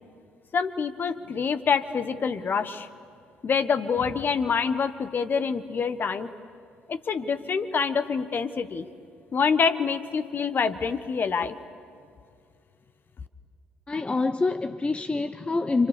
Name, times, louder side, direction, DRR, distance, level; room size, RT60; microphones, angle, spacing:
voice 1, 0.5-2.9 3.4-6.3 6.9-8.9 9.3-11.5, left 5 dB, 45° left, 1.4 m, -26 dB
voice 2, 13.9-15.9, left 3 dB, 20° left, 0.8 m, -26 dB
29.5 x 27.0 x 6.9 m
figure-of-eight pair, 45°, 5 cm